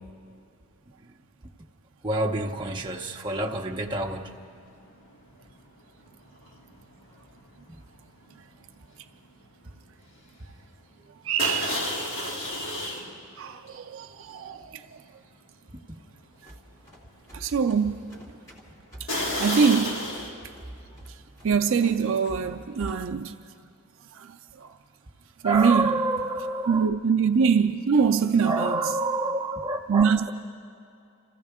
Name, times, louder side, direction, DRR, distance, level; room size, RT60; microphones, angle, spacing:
voice 1, 2.0-4.4 7.7-7.8 15.9-16.0 25.4-26.9 28.4-30.3, right 2 dB, 20° right, 0.8 m, -28 dB
sound 1, 4.2-4.5 4.7-9.4 9.6-9.9 10.3-10.4 11.4-13.1 13.7-13.8 14.4-14.5 15.0-15.1 19.1-20.3, left 1 dB, 60° left, 2.3 m, -32 dB
voice 2, 11.2-11.9 13.4-15.0 17.3-18.1 19.0-19.1 19.4-20.1 21.4-23.4 24.1-24.7 25.4-26.0 26.7-28.9 29.9-30.3, right 6 dB, 60° right, 0.4 m, -24 dB
sound 2, 16.3-23.1, right 1 dB, 15° left, 1.9 m, -46 dB
26.5 x 15.0 x 3.6 m
head